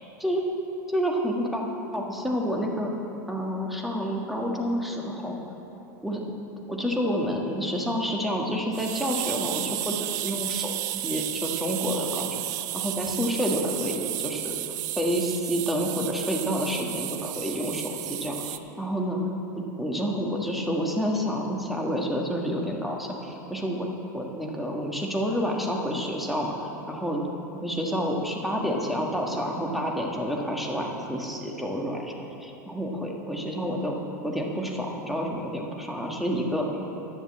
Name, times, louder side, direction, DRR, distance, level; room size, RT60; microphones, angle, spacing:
voice 1, 0.9-1.6 1.9-2.9 3.3-5.4 6.0-6.2 6.7-14.6 14.9-19.2 19.8-23.9 24.1-26.5 26.9-27.2 27.6-32.1 32.4-34.0 34.2-36.7, equal, ahead, -1 dB, 1.6 m, -29 dB
sound 1, 8.7-18.6, right 15 dB, 65° right, 0.5 m, -32 dB
11.0 x 7.1 x 7.4 m, 3.0 s
hypercardioid pair, 105°, 10 cm